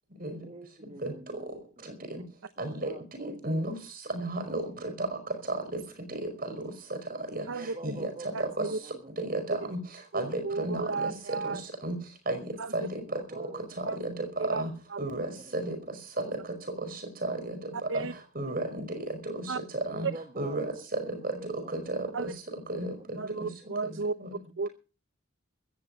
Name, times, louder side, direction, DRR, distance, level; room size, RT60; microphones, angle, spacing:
voice 1, 0.4-1.5 1.8-2.3 2.6-3.6 4.6-4.9 7.5-9.1 13.1-13.9 15.8-15.9 20.1-21.8, right 2 dB, 30° right, 1.3 m, -46 dB
voice 2, 2.6-2.9 3.4-3.7 4.1-5.1 6.2-6.3 7.3-7.4 7.8-8.1 8.6-8.7 9.2-9.8 10.1-11.1 11.8-11.9 12.3-12.4 12.7-12.9 13.8-14.1 14.4-14.7 15.0-15.3 15.5-15.8 16.2-16.3 17.2-17.6 18.3-18.8 19.9-20.1 20.4-20.6 21.7-21.8 22.2-22.3 22.7-22.9 23.4-23.5 24.2-24.3, right 2 dB, 45° right, 5.2 m, -32 dB
voice 3, 8.3-8.8 10.4-11.6 12.6-12.7 13.9-14.0 14.4-14.6 17.9-18.1 19.5-19.6 22.1-22.3 23.2-24.1 24.6-24.7, right 3 dB, 70° right, 0.7 m, -33 dB
16.0 x 13.0 x 5.4 m
head